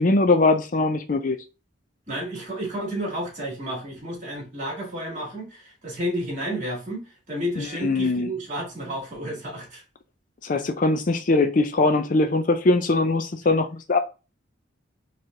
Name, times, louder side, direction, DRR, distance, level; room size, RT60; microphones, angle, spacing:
voice 1, 0.0-1.4 7.6-8.3 10.4-14.0, left 2 dB, 40° left, 0.5 m, -21 dB
voice 2, 2.1-7.0 7.3-9.8, equal, 40° right, 2.1 m, -31 dB
4.3 x 3.3 x 3.6 m
head